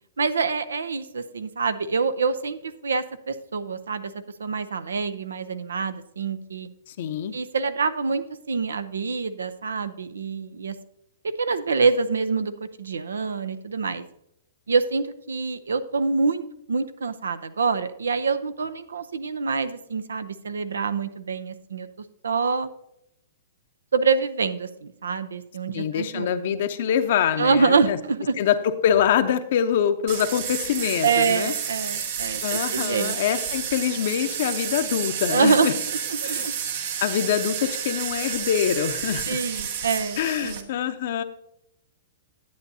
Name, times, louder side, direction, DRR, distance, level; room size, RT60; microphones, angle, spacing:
voice 1, 0.2-4.1 4.4-6.7 7.3-10.8 11.2-12.5 12.8-14.0 14.7-16.4 16.7-21.9 22.2-22.7 23.9-26.3 27.4-28.4 31.0-33.2 35.3-35.8 36.1-36.5 39.3-40.7, right 5 dB, 85° right, 12 dB, 0.6 m, -26 dB
voice 2, 6.9-7.3 25.7-28.0 28.4-31.5 32.4-35.7 36.2-36.5 37.0-39.4 40.2-41.2, left 9 dB, 60° left, 10 dB, 0.7 m, -24 dB
sound 1, 30.1-40.6, right 8 dB, 60° right, 1.0 m, -30 dB
10.5 x 8.7 x 2.7 m, 0.78 s
hypercardioid pair, 125°, 0 cm